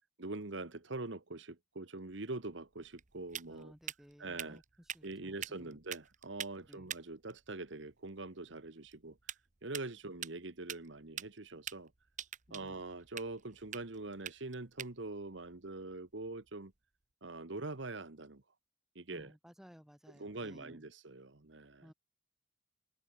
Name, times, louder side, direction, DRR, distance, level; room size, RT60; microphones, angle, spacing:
voice 1, 0.2-3.7 4.2-4.6 5.0-11.9 12.5-16.7 17.2-18.4 18.9-19.3 20.1-21.9, right 2 dB, 65° right, 1.4 m, -44 dB
sound 1, 2.1-16.8, right 9 dB, 40° right, 1.1 m, -48 dB
voice 2, 3.5-4.6 4.9-5.8 6.7-6.9 12.5-12.7 19.1-20.8 21.8-21.9, equal, ahead, 4.4 m, -57 dB
head